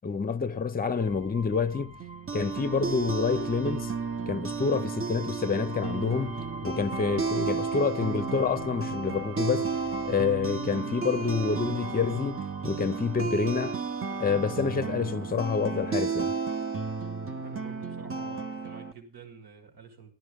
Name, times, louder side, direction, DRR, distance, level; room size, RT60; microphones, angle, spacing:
voice 1, 0.0-2.0 2.3-3.9 4.3-9.7 10.0-13.8 14.2-16.3, left 5 dB, 25° left, 0.6 m, -28 dB
sound 1, 1.0-14.4, right 1 dB, 20° right, 0.5 m, -46 dB
sound 2, 2.0-18.9, right 5 dB, 35° right, 0.9 m, -33 dB
voice 2, 17.4-20.1, right 6 dB, 85° right, 2.3 m, -48 dB
14.0 x 11.0 x 3.5 m
cardioid pair, 85°, 37 cm